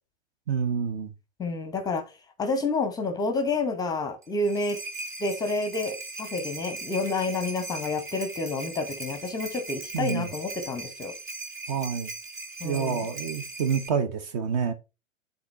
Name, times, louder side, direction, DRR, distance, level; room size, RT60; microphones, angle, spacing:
voice 1, 0.5-1.1 9.9-10.3 11.7-12.1 12.6-14.7, right 6 dB, 35° right, 0.8 m, -28 dB
voice 2, 1.4-2.0 2.4-4.8 5.2-11.1 12.6-13.0, left 3 dB, 10° left, 0.8 m, -29 dB
sound 1, 4.2-13.9, right 2 dB, 10° right, 0.5 m, -39 dB
9.5 x 4.0 x 3.3 m
figure-of-eight pair, 110°, 38 cm